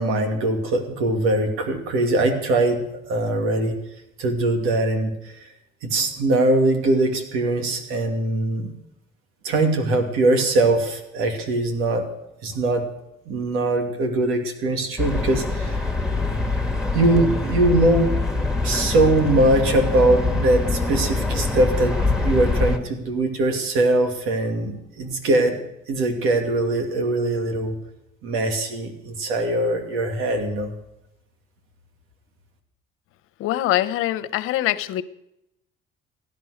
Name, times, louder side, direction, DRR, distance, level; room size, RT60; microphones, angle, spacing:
voice 1, 0.0-2.8 3.1-3.8 4.2-5.4 5.8-8.7 9.4-12.1 12.4-12.8 13.3-15.9 16.9-18.2 18.6-25.6 25.9-27.7 28.2-30.7, right 2 dB, 85° right, 5 dB, 2.6 m, -21 dB
sound 1, 15.0-22.8, left 3 dB, 5° right, 1.8 m, -24 dB
voice 2, 33.4-35.0, left 14 dB, 80° left, 14 dB, 0.8 m, -23 dB
16.0 x 11.0 x 6.5 m, 0.85 s
cardioid pair, 105°, 21 cm